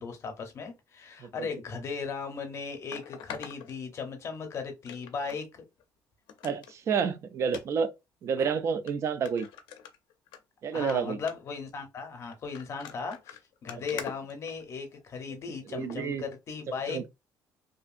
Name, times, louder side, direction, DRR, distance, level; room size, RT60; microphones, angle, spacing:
voice 1, 0.0-5.6 8.4-8.5 10.7-17.0, left 5 dB, 35° left, 0.7 m, -37 dB
sound 1, 2.9-4.4 4.9-5.4 5.8-5.9 6.3-6.7 7.5-7.7 8.4-8.5 8.9-9.0 9.3-10.4 10.7-11.0 11.3-11.6 12.3-15.0 15.8-16.0 16.5-16.6, left 9 dB, 75° left, 0.5 m, -44 dB
voice 2, 6.4-7.9 8.2-9.5 10.6-11.2 15.7-16.2 16.7-17.1, right 6 dB, 40° right, 0.3 m, -30 dB
2.7 x 2.4 x 2.4 m
cardioid pair, 155°, 8 cm